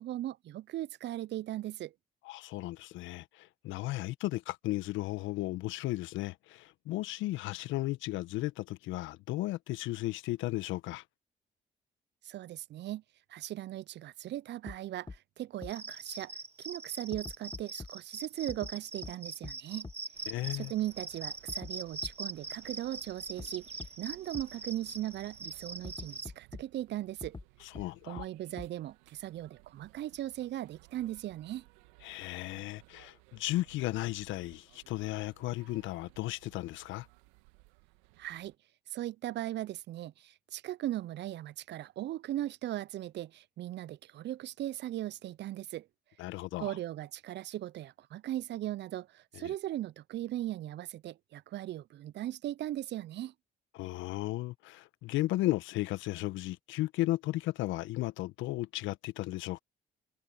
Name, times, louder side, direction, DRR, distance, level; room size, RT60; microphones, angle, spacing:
voice 1, 0.0-1.9 12.2-13.0 13.3-16.3 16.6-19.9 20.5-27.4 28.1-31.6 38.2-38.5 38.9-45.9 46.6-53.3, right 13 dB, 60° right, 0.8 m, -38 dB
voice 2, 2.2-11.0 20.3-20.7 27.6-28.2 32.0-37.1 46.2-46.7 49.3-49.5 53.7-59.6, left 17 dB, 70° left, 1.5 m, -35 dB
sound 1, 14.7-14.8 15.1-15.2 15.6-15.7 17.1-17.9 18.5-18.7 19.0-19.1 19.4-19.5 19.8-19.9 21.5-21.7 22.0-22.1 23.4-23.5 23.8-23.9 24.3-24.4 25.8-26.6 27.2-27.4 27.7-27.8 28.2-28.3 28.6-28.7, left 3 dB, 20° left, 1.4 m, -43 dB
Cricket, 15.6-26.3, right 3 dB, 30° right, 2.5 m, -43 dB
sound 2, 20.1-38.6, right 25 dB, 80° right, 2.4 m, -61 dB
hypercardioid pair, 45°, 20 cm